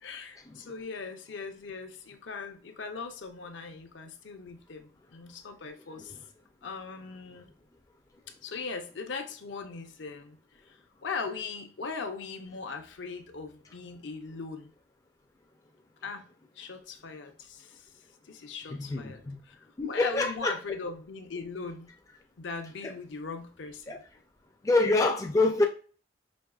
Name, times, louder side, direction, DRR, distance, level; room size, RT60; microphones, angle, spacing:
voice 1, 0.0-6.2 6.6-7.5 8.4-14.7 16.0-16.3 16.5-19.6 19.9-21.9 22.4-24.0, left 4 dB, 70° left, 5 dB, 0.6 m, -39 dB
voice 2, 18.7-19.4 19.8-20.5 23.9-24.0 24.6-25.6, left 2 dB, 15° left, 3 dB, 0.3 m, -26 dB
5.2 x 2.8 x 2.3 m, 0.39 s
head